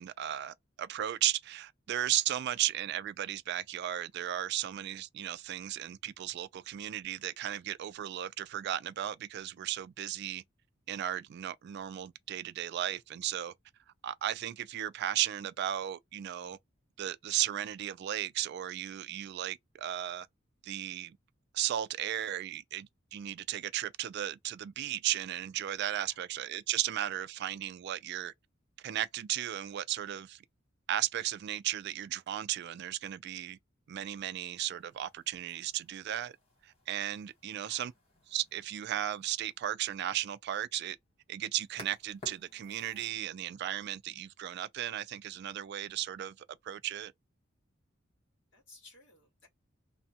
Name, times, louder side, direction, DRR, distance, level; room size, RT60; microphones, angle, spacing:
voice 1, 0.0-10.4 10.9-13.5 14.0-16.6 17.0-20.3 20.6-21.2 21.5-28.3 28.8-30.4 30.9-33.6 33.9-36.3 36.6-37.9 38.3-41.0 41.3-46.4 46.6-47.1, right 12 dB, 55° right, 0.3 m, -35 dB
voice 2, 25.8-26.2 37.6-37.9 48.5-49.5, left 3 dB, 65° left, 1.5 m, -58 dB
sound 1, 34.5-43.2, left 3 dB, 30° left, 1.0 m, -57 dB
2.7 x 2.2 x 2.7 m
head